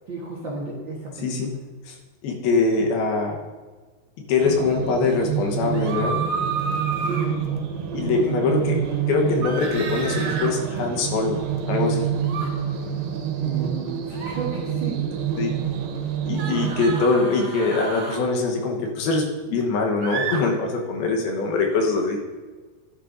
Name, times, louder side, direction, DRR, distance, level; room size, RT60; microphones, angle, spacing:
voice 1, 0.1-1.6 7.0-7.5 8.1-8.4 13.4-15.0, right 3 dB, 70° right, -5 dB, 1.1 m, -33 dB
voice 2, 2.2-3.4 4.3-6.2 7.9-8.8 9.1-11.4 11.7-12.1 15.4-15.5 16.2-22.2, left 4 dB, 75° left, 1 dB, 3.0 m, -23 dB
sound 1, 4.4-17.1, right 8 dB, 90° right, 3.1 m, -27 dB
sound 2, 5.7-7.3 9.4-10.5 12.2-12.5 14.1-14.4 16.3-18.2 20.0-20.4, right 5 dB, 45° right, 1.8 m, -30 dB
12.0 x 11.0 x 2.7 m, 1.4 s
omnidirectional pair, 4.5 m